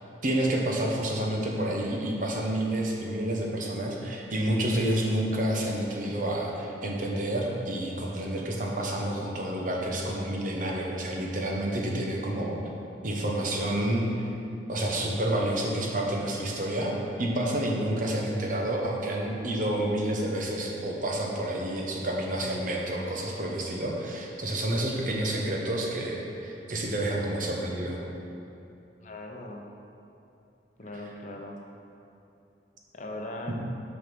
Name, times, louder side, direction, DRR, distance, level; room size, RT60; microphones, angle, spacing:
voice 1, 0.2-12.6 13.0-14.1 14.7-28.0, right 1 dB, 50° right, -1 dB, 1.0 m, -29 dB
voice 2, 29.0-29.7 30.8-31.6 32.9-33.5, left 1 dB, 45° left, 1 dB, 0.8 m, -39 dB
6.3 x 5.5 x 6.0 m, 2.8 s
head